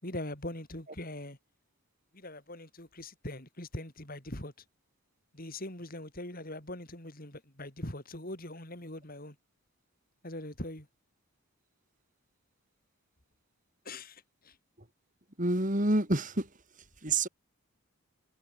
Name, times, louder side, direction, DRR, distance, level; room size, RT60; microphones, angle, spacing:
voice 1, 0.0-1.4 2.1-4.5 5.3-9.4 10.2-10.9 13.8-14.6, left 1 dB, 40° left, 4.7 m, -42 dB
voice 2, 15.4-16.5 17.0-17.3, right 2 dB, 35° right, 3.7 m, -27 dB
head